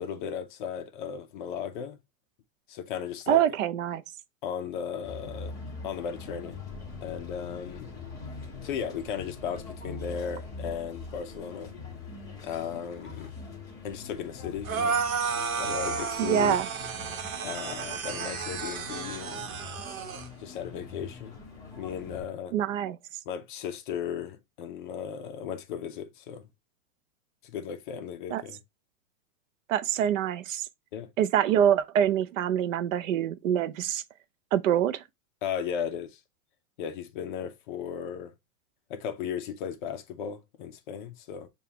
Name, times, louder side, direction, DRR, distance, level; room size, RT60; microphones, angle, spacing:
voice 1, 0.0-2.0 2.7-3.4 4.4-5.6 5.8-6.6 7.0-7.9 8.6-11.7 12.4-13.3 13.8-15.0 15.6-16.6 17.4-19.5 20.4-21.4 21.8-22.5 23.3-26.4 27.4-28.6 30.9-31.1 35.4-36.2 36.8-38.3 38.9-41.5, left 8 dB, 40° left, 0.5 m, -36 dB
voice 2, 3.3-4.0 16.2-16.7 22.5-23.0 28.3-28.4 29.7-30.7 31.2-34.0 34.5-35.0, right 10 dB, 65° right, 0.6 m, -25 dB
sound 1, 5.0-22.2, left 4 dB, 10° left, 1.1 m, -43 dB
sound 2, 14.6-20.3, right 5 dB, 90° right, 1.1 m, -32 dB
6.8 x 2.3 x 2.8 m
supercardioid pair, 160°, 41 cm